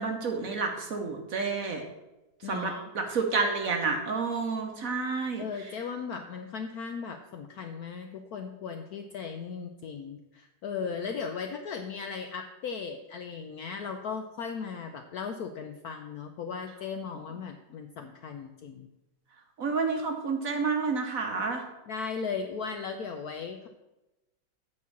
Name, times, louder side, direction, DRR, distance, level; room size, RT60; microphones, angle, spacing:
voice 1, 0.0-1.8 2.5-5.4 19.6-21.6, right 4 dB, 55° right, 4 dB, 1.1 m, -29 dB
voice 2, 2.4-2.8 5.4-18.9 21.9-23.7, left 5 dB, 75° left, 5 dB, 0.9 m, -37 dB
8.4 x 4.3 x 7.1 m, 1.0 s
omnidirectional pair, 2.1 m